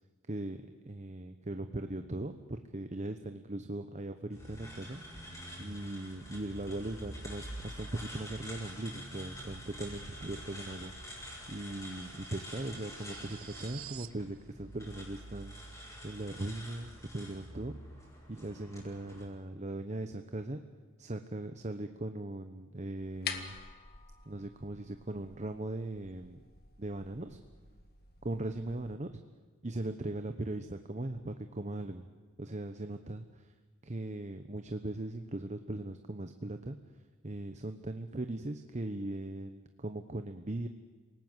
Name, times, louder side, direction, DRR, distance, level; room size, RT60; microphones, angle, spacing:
voice 1, 0.3-5.0 5.6-10.9 11.5-15.5 16.0-17.8 18.3-20.6 21.0-23.6 24.3-26.4 26.8-27.4 28.2-29.1 29.6-32.1 32.4-33.5 33.8-36.8 37.2-40.7, right 2 dB, 35° right, 7 dB, 1.0 m, -39 dB
sound 1, 4.3-19.2, equal, 15° left, 7.1 m, -47 dB
sound 2, 9.4-14.2, right 7 dB, 75° right, 0.8 m, -52 dB
sound 3, 23.0-28.9, left 7 dB, 50° left, 1.8 m, -47 dB
28.0 x 18.5 x 8.0 m, 1.5 s
head